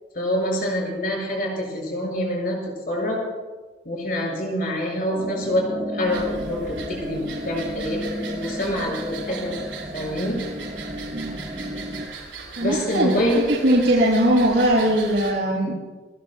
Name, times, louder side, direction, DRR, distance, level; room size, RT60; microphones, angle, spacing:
voice 1, 0.1-2.6 2.9-3.2 3.9-9.6 9.9-10.4 12.6-13.5, equal, 50° left, -2 dB, 6.0 m, -26 dB
sound 1, 5.1-12.1, equal, 40° right, 1.7 m, -33 dB
sound 2, 6.1-15.3, right 4 dB, 85° right, 6.2 m, -39 dB
voice 2, 12.6-15.7, right 1 dB, 60° right, -10 dB, 6.8 m, -20 dB
29.0 x 19.0 x 2.3 m, 1.3 s
head